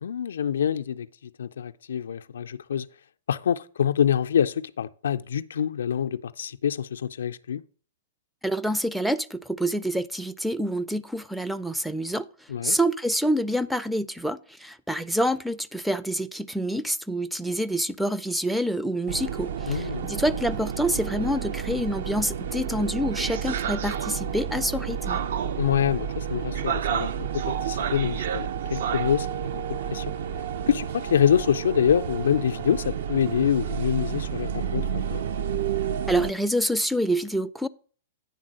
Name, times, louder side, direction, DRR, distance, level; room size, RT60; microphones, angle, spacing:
voice 1, 0.0-2.9 3.3-7.6 12.5-12.8 19.7-20.1 25.6-30.1 30.7-35.2, left 8 dB, 70° left, 0.4 m, -26 dB
voice 2, 8.4-12.3 12.6-25.2 36.1-37.7, equal, ahead, 0.3 m, -27 dB
sound 1, 19.1-36.3, right 8 dB, 60° right, 0.5 m, -30 dB
9.4 x 3.7 x 6.2 m
figure-of-eight pair, 105°, 0 cm